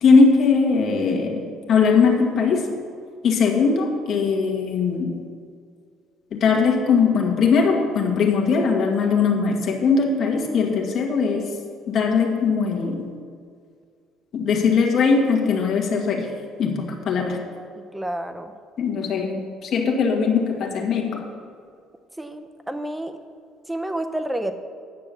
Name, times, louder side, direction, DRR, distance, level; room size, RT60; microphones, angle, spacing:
voice 1, 0.0-2.7 3.2-5.2 6.3-11.5 11.9-13.1 14.3-16.3 16.6-17.4 18.8-21.3, left 5 dB, 45° left, 1 dB, 1.7 m, -20 dB
voice 2, 17.8-18.5 22.2-23.2 23.7-24.6, right 1 dB, 5° right, 8 dB, 0.6 m, -29 dB
9.4 x 6.8 x 7.0 m, 2.1 s
cardioid pair, 145°, 0 cm